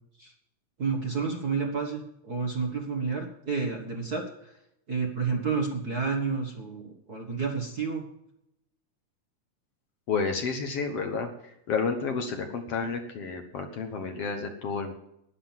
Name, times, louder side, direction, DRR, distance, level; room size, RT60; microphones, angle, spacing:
voice 1, 0.8-4.5 4.9-8.1, right 5 dB, 40° right, 1 dB, 1.5 m, -30 dB
voice 2, 10.1-14.9, left 5 dB, 60° left, 5 dB, 1.9 m, -31 dB
11.5 x 10.0 x 7.4 m, 0.80 s
omnidirectional pair, 3.6 m